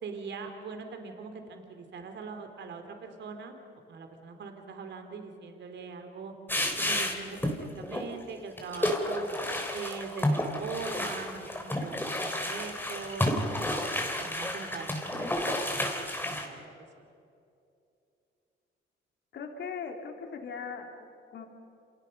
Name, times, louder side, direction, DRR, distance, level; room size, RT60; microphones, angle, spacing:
voice 1, 0.0-3.6 3.9-6.3 6.8-9.3 9.7-13.5 14.0-17.0, right 5 dB, 65° right, 5 dB, 3.2 m, -42 dB
sound 1, 6.5-7.5 7.8-8.0 8.6-16.5, left 1 dB, 10° left, 4.1 m, -31 dB
voice 2, 19.3-21.5, left 5 dB, 65° left, 3 dB, 3.5 m, -39 dB
29.0 x 28.0 x 5.5 m, 2.6 s
cardioid pair, 90°, 20 cm